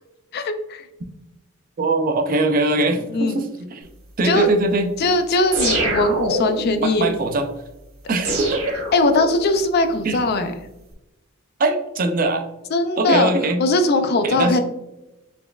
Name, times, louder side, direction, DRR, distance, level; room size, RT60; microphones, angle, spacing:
voice 1, 0.3-0.9 3.1-3.4 4.2-4.5 5.0-7.1 8.9-10.5 12.7-13.3 13.6-14.6, left 2 dB, 50° left, 8 dB, 0.4 m, -20 dB
voice 2, 1.8-3.9 4.2-4.9 6.8-7.5 8.1-8.6 10.0-10.2 11.6-12.5 13.0-13.6 14.2-14.6, right 2 dB, 40° right, 6 dB, 0.4 m, -21 dB
sound 1, 5.5-6.8 8.2-9.5, right 1 dB, 75° right, 1.2 m, -24 dB
4.1 x 3.3 x 2.3 m, 0.93 s
head